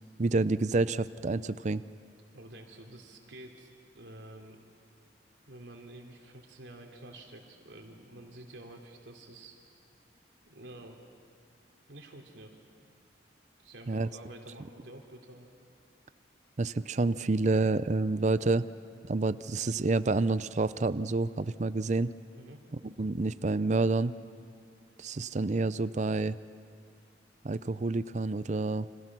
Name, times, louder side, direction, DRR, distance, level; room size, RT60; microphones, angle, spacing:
voice 1, 0.2-1.8 13.9-14.1 16.6-18.6 19.1-22.1 23.0-24.1 25.0-26.4 27.4-28.9, right 3 dB, 40° right, 15 dB, 0.5 m, -28 dB
voice 2, 2.3-4.6 5.5-9.6 10.5-11.0 11.9-12.6 13.6-15.5 22.3-22.6, right 1 dB, 75° right, 2 dB, 3.1 m, -49 dB
29.5 x 26.0 x 6.1 m, 2.4 s
head